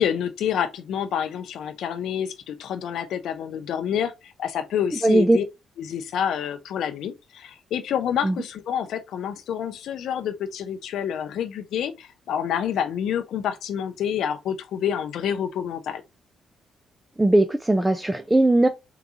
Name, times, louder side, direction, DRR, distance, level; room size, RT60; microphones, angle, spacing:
voice 1, 0.0-5.4 5.8-16.0, left 9 dB, 75° left, 0.5 m, -28 dB
voice 2, 5.0-5.4 8.2-8.3 17.2-18.7, right 1 dB, 10° right, 0.3 m, -19 dB
3.8 x 2.3 x 2.8 m
cardioid pair, 90°, 0 cm